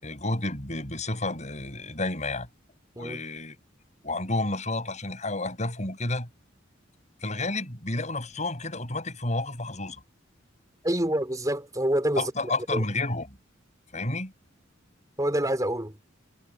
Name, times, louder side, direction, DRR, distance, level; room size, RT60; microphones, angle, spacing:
voice 1, 0.0-2.5 3.0-3.6 4.0-6.3 7.2-10.0 12.2-13.4 13.9-14.3, left 2 dB, 35° left, 7.6 m, -30 dB
voice 2, 10.8-12.2 12.7-12.8 15.2-15.9, right 1 dB, 20° right, 3.9 m, -26 dB
head